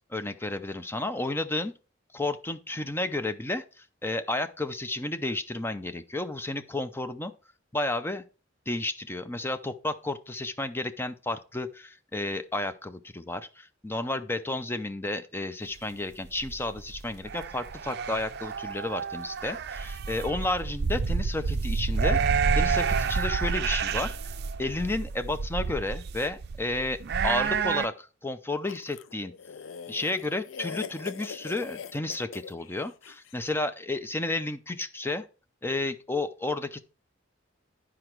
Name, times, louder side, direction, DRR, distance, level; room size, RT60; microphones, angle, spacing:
voice 1, 0.1-1.7 2.1-7.3 7.7-8.2 8.7-24.3 24.6-27.0 27.2-29.3 29.9-35.2 35.6-36.8, left 2 dB, 10° left, 0.5 m, -32 dB
sound 1, 16.3-27.9, right 5 dB, 55° right, 0.4 m, -29 dB
sound 2, 28.7-33.4, left 6 dB, 75° left, 0.4 m, -42 dB
9.9 x 4.9 x 4.5 m
head